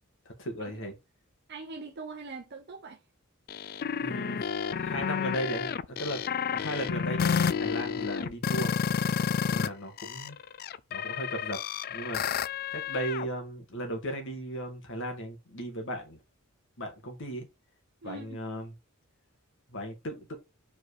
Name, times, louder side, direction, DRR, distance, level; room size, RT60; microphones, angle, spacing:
voice 1, 0.4-0.9 3.9-4.4 4.8-6.2 6.5-8.8 9.5-10.4 10.9-11.6 11.9-12.2 12.7-16.2 16.8-17.5 18.0-18.7 19.7-20.4, right 1 dB, 60° left, 2.1 m, -36 dB
voice 2, 1.5-3.0 18.0-18.4, right 3 dB, 50° right, 0.9 m, -42 dB
sound 1, 3.5-9.7 10.0-13.3, left 7 dB, 45° left, 0.4 m, -30 dB
4.9 x 4.6 x 4.9 m
head